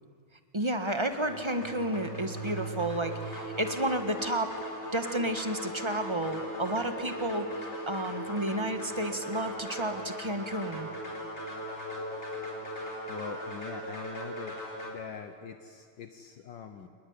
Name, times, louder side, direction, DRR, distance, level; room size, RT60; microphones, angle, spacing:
voice 1, 0.5-4.6 4.9-7.5 7.9-10.9, right 1 dB, 15° right, 8 dB, 1.3 m, -31 dB
sound 1, 1.2-14.9, equal, 30° left, 4.2 m, -38 dB
voice 2, 13.1-14.6 14.8-16.9, left 7 dB, 65° left, 8 dB, 1.6 m, -43 dB
27.5 x 20.0 x 9.6 m, 2.3 s
omnidirectional pair, 2.3 m